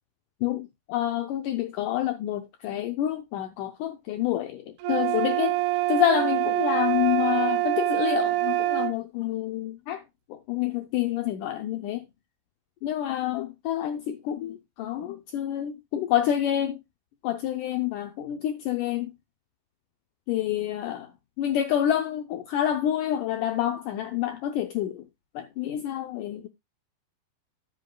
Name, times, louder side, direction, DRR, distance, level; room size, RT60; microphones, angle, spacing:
voice 1, 0.4-5.6 5.9-10.0 10.3-12.1 12.8-16.8 17.2-19.1 20.3-21.1 21.4-25.1 25.4-26.5, left 11 dB, 80° left, 1.8 m, -28 dB
sound 1, 4.8-9.0, right 16 dB, 80° right, 2.6 m, -25 dB
10.0 x 9.1 x 2.3 m
omnidirectional pair, 4.4 m